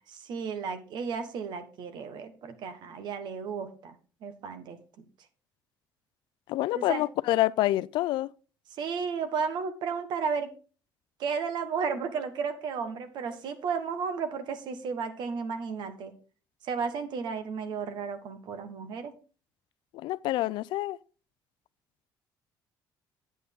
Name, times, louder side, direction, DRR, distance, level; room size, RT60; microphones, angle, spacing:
voice 1, 0.1-3.9 4.2-4.8 6.7-7.0 8.8-10.5 11.2-16.1 16.6-19.1, right 5 dB, 65° right, 1.4 m, -33 dB
voice 2, 6.5-8.3 19.9-21.0, left 16 dB, 75° left, 0.4 m, -27 dB
9.1 x 8.4 x 3.7 m
cardioid pair, 120°, 8 cm